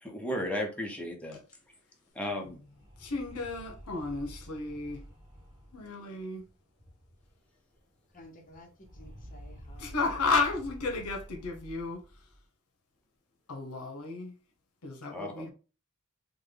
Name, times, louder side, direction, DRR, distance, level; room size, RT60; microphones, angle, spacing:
voice 1, 0.0-1.4 2.1-2.6 15.1-15.5, left 1 dB, 5° left, 0.7 m, -34 dB
sound 1, 2.2-7.5 7.7-7.8 8.1-12.4, equal, 15° right, 1.1 m, -50 dB
voice 2, 3.0-5.0 5.7-6.4 9.8-12.0 13.5-14.3 14.8-15.5, left 3 dB, 80° left, 0.8 m, -33 dB
voice 3, 8.1-10.2, left 1 dB, 40° left, 0.9 m, -53 dB
3.6 x 2.2 x 3.2 m
head